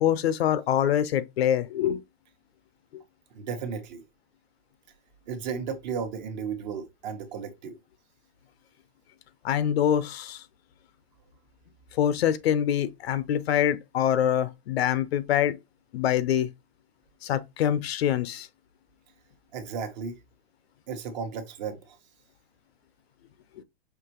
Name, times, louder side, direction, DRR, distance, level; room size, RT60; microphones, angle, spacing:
voice 1, 0.0-2.0 9.4-10.4 12.0-15.6 15.9-16.5 17.2-18.5, left 10 dB, 65° left, 0.7 m, -25 dB
voice 2, 3.3-4.0 5.3-7.8 19.5-20.2 20.9-22.0, right 6 dB, 40° right, 1.0 m, -34 dB
5.8 x 2.9 x 2.9 m
supercardioid pair, 165°, 33 cm